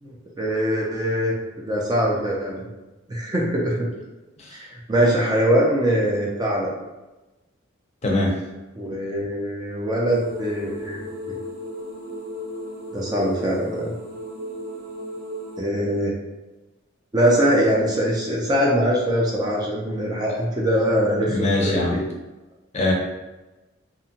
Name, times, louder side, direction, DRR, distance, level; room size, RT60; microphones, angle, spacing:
voice 1, 0.0-2.7 3.1-3.9 4.7-6.7 8.8-11.4 12.9-13.9 15.6-16.2 17.1-22.0, equal, 20° right, -3 dB, 0.4 m, -22 dB
voice 2, 8.0-8.3 20.3-20.4 21.3-22.0 22.7-22.9, left 1 dB, 35° left, -2 dB, 0.6 m, -22 dB
sound 1, 10.1-15.6, equal, 75° right, 0.8 m, -35 dB
2.7 x 2.2 x 2.8 m, 1.1 s
head